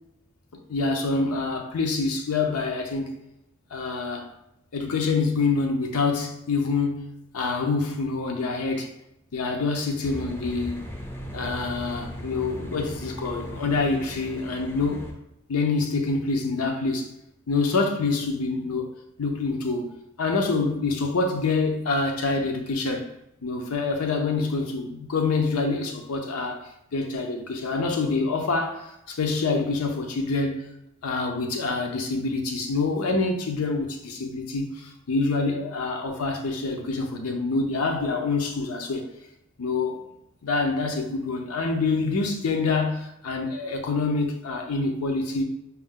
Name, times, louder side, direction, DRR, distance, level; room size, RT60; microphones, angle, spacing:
voice 1, 0.7-3.1 3.7-4.3 4.7-8.9 9.3-10.9 11.3-15.1 15.5-17.1 17.5-18.9 19.2-19.9 20.2-23.1 23.4-30.6 31.0-39.1 39.6-40.0 40.4-45.4, left 3 dB, 85° left, 3 dB, 0.6 m, -26 dB
sound 1, 10.0-15.1, equal, 10° left, 0.4 m, -37 dB
4.4 x 2.1 x 3.6 m, 0.83 s
head